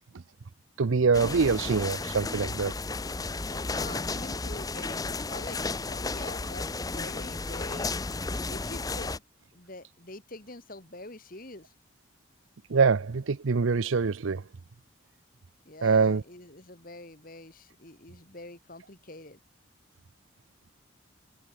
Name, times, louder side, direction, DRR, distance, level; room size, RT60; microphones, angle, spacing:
voice 1, 0.8-2.7 12.7-14.4 15.8-16.2, right 5 dB, 75° right, 0.6 m, -24 dB
sound 1, 1.1-9.2, left 3 dB, 20° left, 0.7 m, -33 dB
voice 2, 3.4-7.9 8.4-9.2 9.5-11.7 15.7-19.4, left 2 dB, 45° left, 2.2 m, -45 dB
head